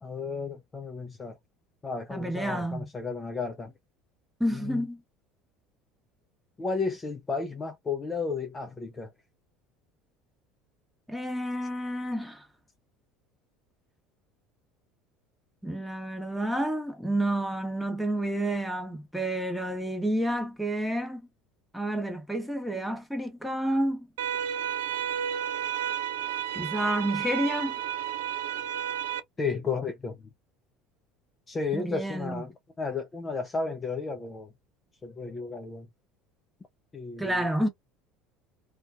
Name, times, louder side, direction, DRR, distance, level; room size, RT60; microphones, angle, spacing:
voice 1, 0.0-1.4 1.8-3.7 4.5-4.8 6.6-9.1 29.4-30.2 31.5-34.5 35.0-35.9 36.9-37.5, left 4 dB, 25° left, 0.5 m, -33 dB
voice 2, 2.1-2.9 4.4-5.0 11.1-12.4 15.6-21.2 21.7-24.1 26.5-27.7 31.7-32.4 37.2-37.7, right 1 dB, ahead, 0.9 m, -30 dB
sound 1, 24.2-29.2, right 10 dB, 70° right, 0.3 m, -32 dB
2.5 x 2.3 x 2.3 m
figure-of-eight pair, 65°, 0 cm